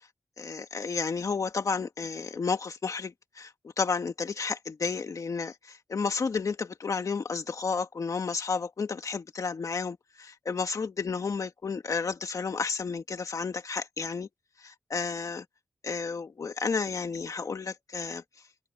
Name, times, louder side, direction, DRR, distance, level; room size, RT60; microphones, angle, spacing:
voice 1, 0.4-14.3 14.6-15.4 15.8-18.2, left 5 dB, 65° left, 1.8 m, -32 dB
open air
wide cardioid pair, 130°, 6 cm